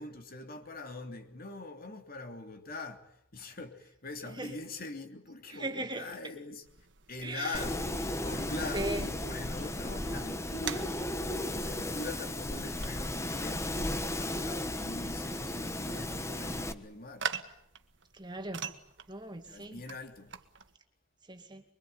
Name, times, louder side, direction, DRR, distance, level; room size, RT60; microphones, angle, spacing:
voice 1, 0.0-3.0 3.3-6.7 7.1-7.9 8.2-11.0 11.6-17.3 19.4-20.3, left 2 dB, 50° left, 3.1 m, -42 dB
voice 2, 5.6-6.0 7.2-7.5 8.7-9.1 18.2-18.6 19.1-19.8 21.3-21.6, right 1 dB, 25° right, 2.3 m, -37 dB
sound 1, 6.6-20.7, right 6 dB, 65° right, 1.7 m, -45 dB
Wind, 7.5-16.7, left 1 dB, 15° left, 1.3 m, -35 dB
24.5 x 24.0 x 9.4 m
head